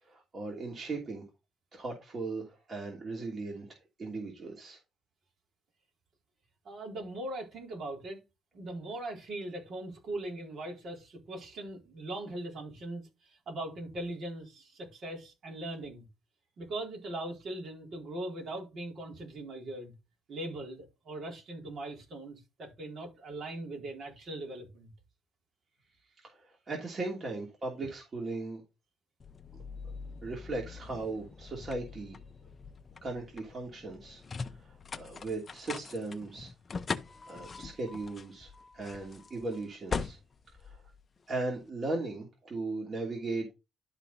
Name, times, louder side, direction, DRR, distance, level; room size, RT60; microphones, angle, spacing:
voice 1, 0.0-1.2 1.7-4.8 26.2-28.6 30.2-32.5 33.0-36.5 37.2-40.2 40.6-40.8 41.3-43.5, right 3 dB, 45° right, 2.9 m, -38 dB
voice 2, 6.6-8.2 8.5-16.0 16.6-19.9 20.3-24.9, right 1 dB, 60° right, 4.2 m, -40 dB
sound 1, 29.2-41.6, left 5 dB, 40° left, 0.8 m, -42 dB
12.0 x 4.3 x 4.1 m
cardioid pair, 90°, 0 cm